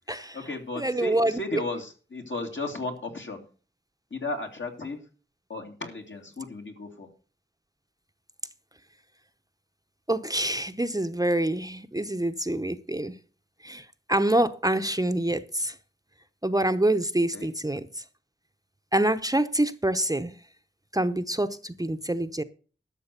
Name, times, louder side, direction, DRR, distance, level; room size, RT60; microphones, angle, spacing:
voice 1, 0.1-3.4 4.1-5.0 5.5-7.1 17.3-17.5, left 2 dB, 65° left, 2.6 m, -35 dB
voice 2, 0.8-1.6 10.1-13.1 13.6-15.7 16.4-18.0 18.9-20.4 20.9-22.4, right 1 dB, 15° right, 0.8 m, -26 dB
12.5 x 6.4 x 6.7 m
wide cardioid pair, 60°, 21 cm